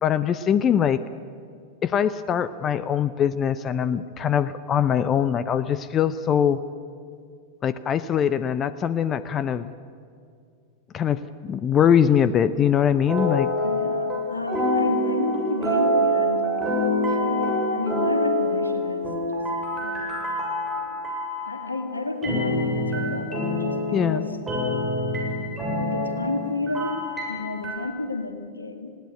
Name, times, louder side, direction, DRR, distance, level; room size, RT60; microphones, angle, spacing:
voice 1, 0.0-1.0 1.8-6.6 7.6-9.7 10.9-13.5 23.9-24.3, left 8 dB, 25° left, 15 dB, 0.6 m, -22 dB
sound 1, 13.1-14.2 14.5-21.7 22.2-27.8, equal, 15° right, 7.4 m, -26 dB
voice 2, 13.6-16.5 17.1-19.5 19.8-20.0 20.8-21.0 21.4-24.4 25.3-25.5 25.8-28.9, left 3 dB, 80° left, 8 dB, 1.9 m, -32 dB
20.5 x 16.5 x 9.8 m, 2.3 s
figure-of-eight pair, 90°, 0 cm